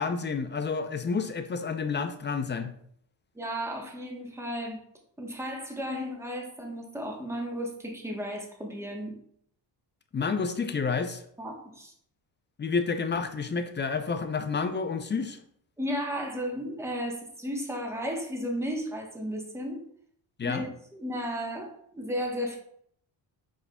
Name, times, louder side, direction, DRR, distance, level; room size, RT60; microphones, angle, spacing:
voice 1, 0.0-2.7 10.1-11.2 12.6-15.4 20.4-20.6, left 5 dB, 25° left, 8 dB, 0.4 m, -29 dB
voice 2, 3.3-4.8 5.2-9.1 11.4-11.9 15.8-19.8 20.4-22.6, equal, 5° right, 0 dB, 1.1 m, -34 dB
4.9 x 4.7 x 2.3 m, 0.66 s
cardioid pair, 90°, 46 cm